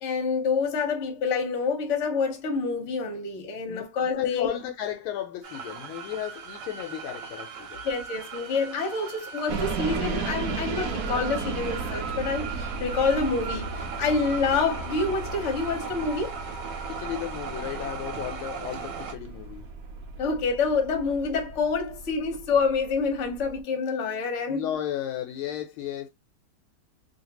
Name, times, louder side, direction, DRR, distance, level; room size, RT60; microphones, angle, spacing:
voice 1, 0.0-4.5 7.8-16.4 20.2-24.7, left 4 dB, 45° left, 1.0 m, -27 dB
voice 2, 4.1-7.9 16.9-19.7 24.5-26.1, left 11 dB, 80° left, 1.4 m, -34 dB
sound 1, 5.4-19.1, right 6 dB, 60° right, 1.4 m, -38 dB
sound 2, 9.5-23.6, right 3 dB, 85° right, 0.8 m, -35 dB
3.2 x 2.7 x 2.9 m
omnidirectional pair, 2.4 m